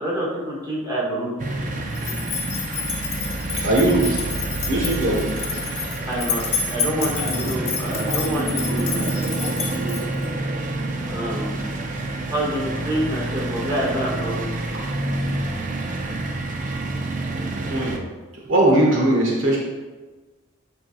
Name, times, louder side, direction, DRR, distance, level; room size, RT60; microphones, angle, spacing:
voice 1, 0.0-1.3 6.1-9.1 11.0-14.5, right 1 dB, 20° right, -6 dB, 1.7 m, -27 dB
sound 1, 1.4-18.0, right 2 dB, 40° right, 0.5 m, -28 dB
sound 2, 1.9-10.3, left 5 dB, 30° left, 1.2 m, -29 dB
voice 2, 3.5-4.2 4.7-5.6 7.2-7.5 7.8-10.0 17.7-18.0 18.3-19.6, right 1 dB, 65° right, -3 dB, 1.3 m, -22 dB
8.8 x 4.9 x 2.4 m, 1.3 s
head